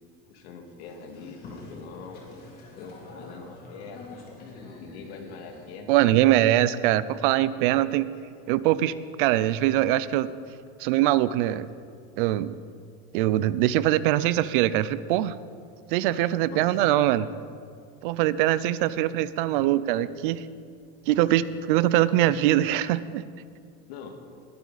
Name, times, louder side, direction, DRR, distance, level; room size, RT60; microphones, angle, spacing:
voice 1, 0.3-2.3 2.7-6.4 8.2-8.3 16.4-16.8 23.9-24.2, left 4 dB, 90° left, 3 dB, 2.2 m, -43 dB
Boat Water vehicle, 0.8-5.8, left 3 dB, 30° left, 2.5 m, -46 dB
voice 2, 5.9-8.1 8.5-10.3 10.8-11.7 12.2-12.6 13.1-15.3 15.9-17.3 18.0-20.5 21.1-23.2, right 14 dB, 60° right, 17 dB, 0.5 m, -22 dB
20.5 x 11.5 x 4.1 m, 2.3 s
cardioid pair, 175°, 31 cm